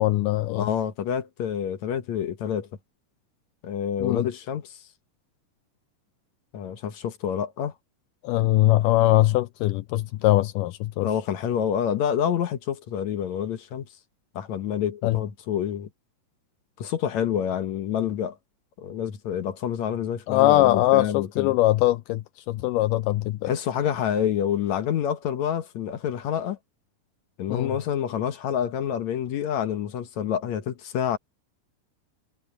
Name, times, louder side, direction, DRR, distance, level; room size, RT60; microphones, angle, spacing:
voice 1, 0.0-0.7 4.0-4.3 8.2-11.1 15.0-15.2 20.3-23.5 27.5-27.7, left 16 dB, 80° left, 2.2 m, -22 dB
voice 2, 0.5-2.7 3.6-4.8 6.5-7.7 11.0-13.9 14.4-15.9 16.8-18.4 18.8-21.6 23.5-26.6 27.4-31.2, left 9 dB, 65° left, 2.3 m, -27 dB
omnidirectional pair, 3.8 m